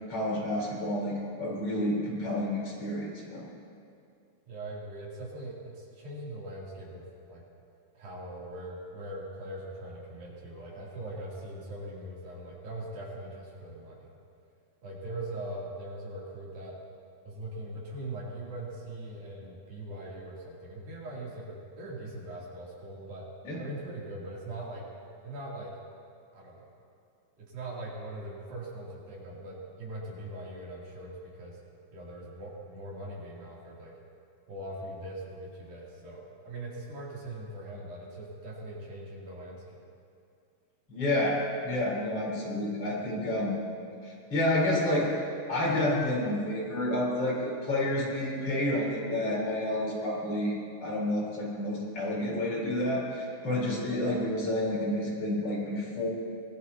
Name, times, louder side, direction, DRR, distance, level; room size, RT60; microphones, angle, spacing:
voice 1, 0.1-3.4 23.4-23.6 40.9-43.6 44.0-45.1 45.5-50.5 50.8-56.1, left 1 dB, 40° left, -5 dB, 5.1 m, -29 dB
voice 2, 4.5-7.4 7.9-14.1 14.8-16.8 17.2-23.3 23.6-24.8 25.2-25.7 26.3-26.7 27.4-31.6 31.9-33.9 34.5-39.8, right 1 dB, 70° right, -5 dB, 4.9 m, -41 dB
25.0 x 19.5 x 2.9 m, 2.5 s
omnidirectional pair, 4.3 m